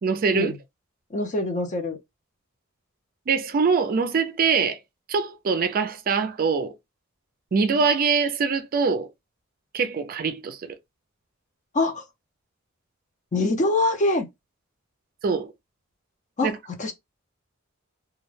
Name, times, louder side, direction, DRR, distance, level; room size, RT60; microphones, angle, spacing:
voice 1, 0.0-0.5 3.3-4.8 5.1-6.7 7.5-9.1 9.7-10.8 15.2-15.5 16.4-16.5, right 5 dB, 45° right, 0.4 m, -23 dB
voice 2, 1.1-2.0 11.7-12.0 13.3-14.3 16.4-16.5 16.8-16.9, left 2 dB, 35° left, 0.6 m, -24 dB
2.3 x 2.1 x 3.1 m
head